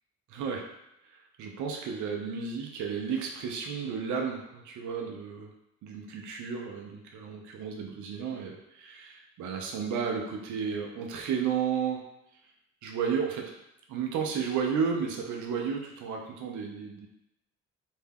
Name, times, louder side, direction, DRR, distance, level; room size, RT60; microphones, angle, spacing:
voice 1, 0.3-0.6 1.1-5.5 5.8-12.1 12.8-13.5 13.9-17.1, right 6 dB, 75° right, 1 dB, 0.6 m, -33 dB
2.6 x 2.2 x 3.3 m, 0.84 s
cardioid pair, 90°, 30 cm